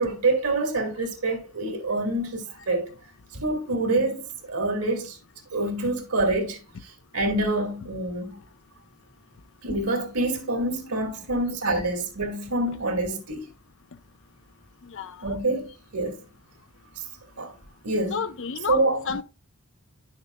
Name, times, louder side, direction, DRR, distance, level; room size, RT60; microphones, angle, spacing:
voice 1, 0.0-2.9 3.3-5.2 5.5-6.6 7.1-8.4 9.6-13.5 15.2-15.7 15.9-16.2 17.0-17.1 17.4-17.5 17.8-18.2 18.7-19.0, right 2 dB, 85° right, 2.2 m, -26 dB
voice 2, 14.8-15.4 18.1-19.2, left 6 dB, 60° left, 0.6 m, -31 dB
10.5 x 6.5 x 2.2 m
head